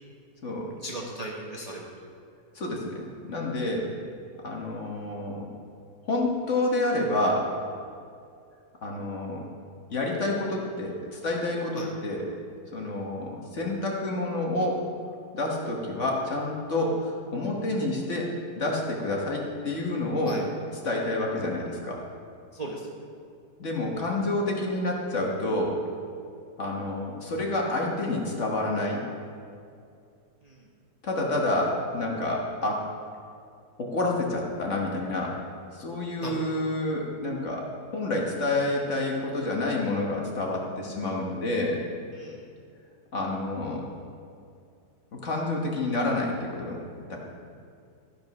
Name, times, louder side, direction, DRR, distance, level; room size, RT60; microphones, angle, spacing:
voice 1, 0.8-1.9 11.7-11.9 20.2-20.4 22.5-22.9 30.4-30.7 36.2-36.6 42.1-42.5, right 1 dB, 30° right, -3 dB, 0.9 m, -37 dB
voice 2, 2.5-3.9 4.4-5.5 6.0-7.5 8.8-9.4 9.9-12.3 12.7-14.8 15.3-18.3 18.5-20.4 20.8-22.0 23.6-25.8 26.6-29.0 31.0-32.8 33.8-35.3 35.7-37.7 37.9-41.8 43.1-43.8 45.1-46.8 47.1-47.2, left 2 dB, 45° left, -1 dB, 1.5 m, -28 dB
13.5 x 5.2 x 5.3 m, 2.4 s
omnidirectional pair, 1.8 m